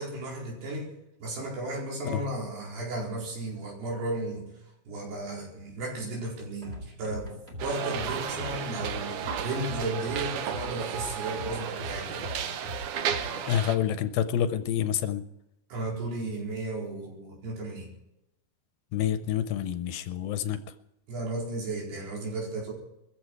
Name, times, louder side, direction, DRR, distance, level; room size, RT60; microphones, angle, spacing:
voice 1, 0.0-4.5 4.9-7.3 7.6-12.3 15.7-17.9 21.1-22.7, right 2 dB, 85° right, -3 dB, 6.5 m, -34 dB
sound 1, 6.6-13.4, left 1 dB, 20° right, 1.8 m, -41 dB
sound 2, 7.6-13.8, right 8 dB, 70° right, 1.9 m, -33 dB
voice 2, 13.5-15.2 18.9-20.6, left 10 dB, 75° left, 10 dB, 2.4 m, -28 dB
20.5 x 15.0 x 4.6 m, 0.86 s
omnidirectional pair, 4.6 m